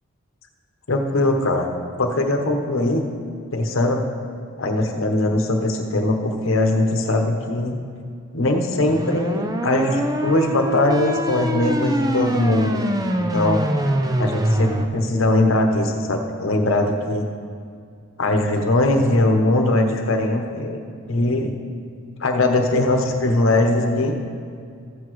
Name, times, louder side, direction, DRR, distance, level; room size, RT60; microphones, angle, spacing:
voice 1, 0.9-1.7 2.0-3.0 3.5-4.0 4.6-7.8 8.3-12.8 13.2-13.6 14.2-17.2 18.2-20.8 21.1-21.5 22.2-24.1, left 2 dB, 70° left, 3 dB, 1.0 m, -20 dB
sound 1, 8.9-14.9, right 1 dB, 20° right, 0.5 m, -24 dB
14.0 x 8.2 x 3.1 m, 2.3 s
head